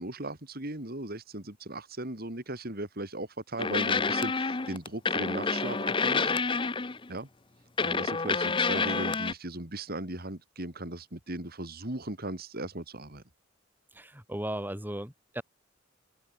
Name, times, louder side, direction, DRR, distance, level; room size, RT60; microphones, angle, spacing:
voice 1, 0.0-6.3 7.1-7.3 7.8-13.2, right 1 dB, 50° right, 3.7 m, -37 dB
sound 1, 3.6-7.1 7.8-9.3, left 4 dB, 25° left, 0.7 m, -28 dB
voice 2, 13.9-15.4, right 1 dB, 10° right, 6.6 m, -36 dB
head